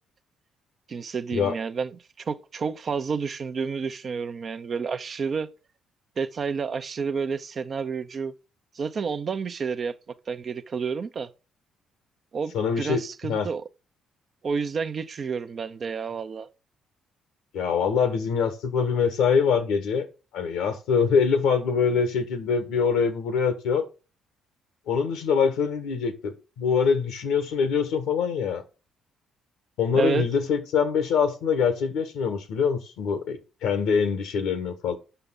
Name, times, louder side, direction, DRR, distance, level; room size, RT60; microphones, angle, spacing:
voice 1, 0.9-5.5 6.2-8.3 8.7-9.9 10.3-11.3 12.3-13.6 14.4-16.5 29.9-30.2, right 5 dB, 50° right, 0.7 m, -30 dB
voice 2, 12.5-13.5 17.5-20.0 20.3-23.8 24.9-28.6 29.8-34.9, left 6 dB, 80° left, 1.4 m, -24 dB
6.7 x 5.8 x 3.8 m
supercardioid pair, 60°, 0 cm